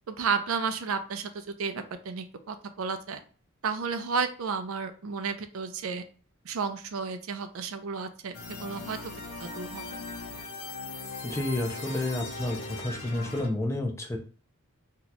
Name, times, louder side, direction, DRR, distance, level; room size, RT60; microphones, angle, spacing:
voice 1, 0.1-3.2 3.6-6.0 6.4-9.0 9.4-10.0, right 5 dB, 75° right, 9 dB, 0.5 m, -32 dB
sound 1, 8.3-13.5, left 3 dB, 90° left, 0.7 m, -39 dB
voice 2, 11.2-14.2, left 1 dB, 15° left, 3 dB, 0.4 m, -30 dB
2.8 x 2.3 x 4.0 m, 0.40 s
head